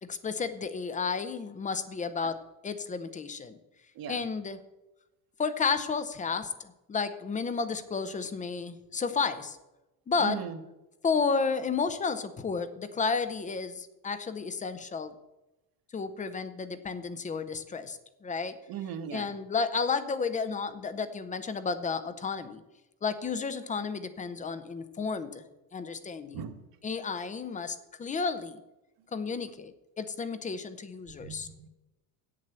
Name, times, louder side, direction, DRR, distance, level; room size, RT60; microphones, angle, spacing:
voice 1, 0.0-3.6 4.1-4.6 5.4-9.6 10.1-10.4 11.0-15.1 15.9-18.6 19.1-22.6 23.0-25.4 25.7-26.4 26.8-28.6 29.1-31.5, left 5 dB, 15° left, 12 dB, 0.7 m, -32 dB
voice 2, 10.2-10.6 18.7-19.3 26.3-26.6 31.1-31.7, right 8 dB, 50° right, 7 dB, 1.4 m, -38 dB
8.3 x 7.6 x 7.6 m, 0.99 s
cardioid pair, 135°, 44 cm